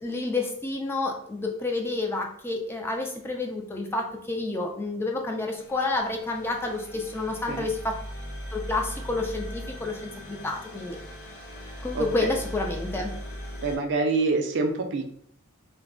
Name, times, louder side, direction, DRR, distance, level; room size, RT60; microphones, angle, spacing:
voice 1, 0.0-8.0 8.5-11.0 11.8-13.1, left 2 dB, 10° left, 1 dB, 0.3 m, -29 dB
sound 1, 5.6-13.8, equal, 70° left, 1.0 m, -39 dB
voice 2, 13.6-15.0, right 3 dB, 55° right, 4 dB, 0.4 m, -25 dB
2.2 x 2.0 x 3.6 m, 0.66 s
head